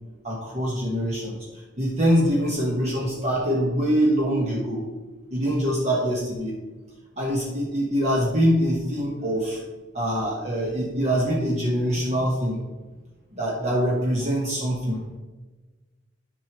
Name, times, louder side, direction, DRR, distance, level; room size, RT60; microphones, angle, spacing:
voice 1, 0.2-1.4 1.8-4.8 5.3-6.6 7.2-9.6 9.9-12.6 13.3-15.0, equal, 35° right, -3 dB, 1.3 m, -24 dB
11.0 x 6.3 x 3.0 m, 1.2 s
head